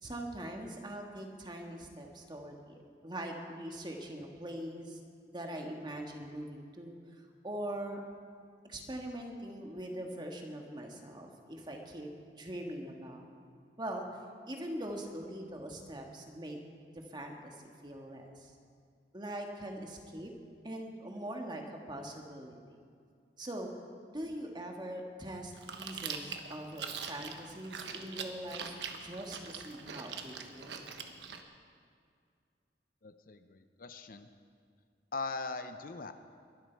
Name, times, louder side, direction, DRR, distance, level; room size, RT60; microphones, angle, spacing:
voice 1, 0.0-5.0 5.3-8.0 8.6-13.3 13.8-16.6 17.1-18.5 19.1-20.3 20.6-22.6 23.4-23.7 24.1-30.8, right 1 dB, 25° right, 2 dB, 1.6 m, -42 dB
Chewing mastication, 25.5-31.4, right 6 dB, 80° right, 1.2 m, -43 dB
voice 2, 33.0-34.3 35.1-36.1, left 3 dB, 50° left, 9 dB, 0.7 m, -40 dB
22.5 x 12.0 x 4.6 m, 2.3 s
head